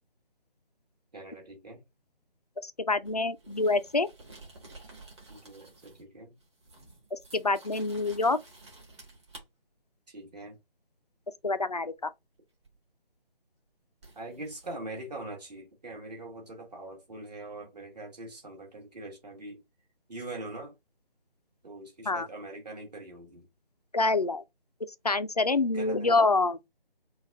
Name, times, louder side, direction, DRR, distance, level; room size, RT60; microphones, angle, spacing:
voice 1, 1.1-1.8 5.3-6.3 10.1-10.6 14.2-19.6 20.1-20.7 21.6-23.5 25.7-26.1, right 2 dB, 45° right, 1.8 m, -42 dB
voice 2, 2.6-4.1 7.1-8.4 11.4-12.1 22.1-22.3 23.9-24.4 25.0-26.6, left 3 dB, 45° left, 0.4 m, -26 dB
sound 1, 3.0-6.1 6.4-9.4 12.6-12.8 14.0-14.7, right 2 dB, 30° right, 1.4 m, -52 dB
4.0 x 2.3 x 4.0 m
figure-of-eight pair, 160°, 30 cm